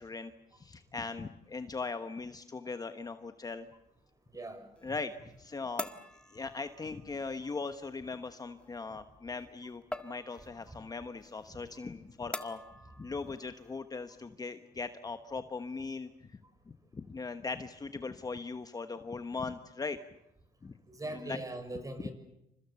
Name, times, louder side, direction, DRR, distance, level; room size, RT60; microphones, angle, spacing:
voice 1, 0.0-3.7 4.8-5.1 5.4-5.9 6.3-12.6 13.0-16.4 16.7-20.0 20.6-20.7 21.1-21.4 22.0-22.1, left 4 dB, 20° left, 9 dB, 1.2 m, -39 dB
sound 1, 3.4-14.3, left 1 dB, 5° left, 1.7 m, -48 dB
voice 2, 4.3-4.7 10.7-10.8 20.9-22.1, right 2 dB, 20° right, 9 dB, 6.0 m, -40 dB
29.0 x 26.5 x 7.0 m, 0.86 s
cardioid pair, 110°, 17 cm